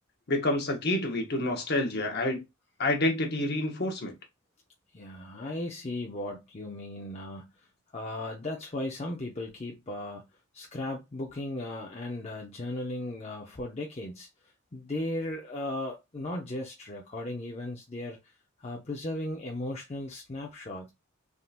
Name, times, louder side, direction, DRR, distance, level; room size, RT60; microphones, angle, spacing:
voice 1, 0.3-2.4 2.8-4.1, left 1 dB, 50° left, 0.8 m, -28 dB
voice 2, 4.9-7.7 7.9-10.2 10.5-14.3 14.7-18.2 18.6-20.9, left 1 dB, 30° left, 0.5 m, -36 dB
3.6 x 2.7 x 2.4 m
head